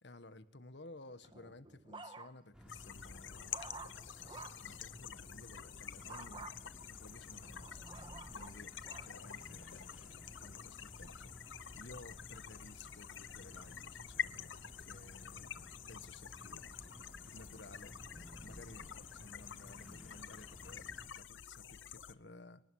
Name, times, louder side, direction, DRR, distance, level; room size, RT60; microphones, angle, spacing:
voice 1, 0.0-6.5 6.9-7.9 8.3-8.7 9.0-16.9 17.2-22.6, left 2 dB, 65° left, 11 dB, 1.6 m, -56 dB
sound 1, 1.2-2.6 3.0-4.7 6.1-6.5 7.2-9.1 9.7-10.1, right 3 dB, 25° right, 1.4 m, -51 dB
sound 2, 2.5-21.1, equal, 5° right, 4.6 m, -56 dB
sound 3, 2.7-22.1, left 8 dB, 85° left, 0.9 m, -48 dB
27.0 x 19.5 x 6.4 m, 0.74 s
head